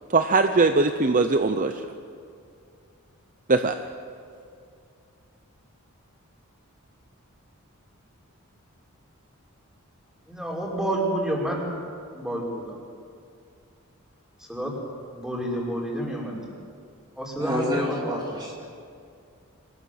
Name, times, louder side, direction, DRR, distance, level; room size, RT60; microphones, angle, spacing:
voice 1, 0.1-1.8 3.5-3.8, right 3 dB, 35° right, 8 dB, 0.7 m, -21 dB
voice 2, 10.3-11.7 12.1-12.8 14.5-14.7 15.1-16.4 17.2-18.0, right 1 dB, 5° right, -3 dB, 5.1 m, -29 dB
voice 3, 17.4-18.7, equal, 20° right, -2 dB, 2.7 m, -28 dB
25.0 x 19.5 x 7.8 m, 2.4 s
head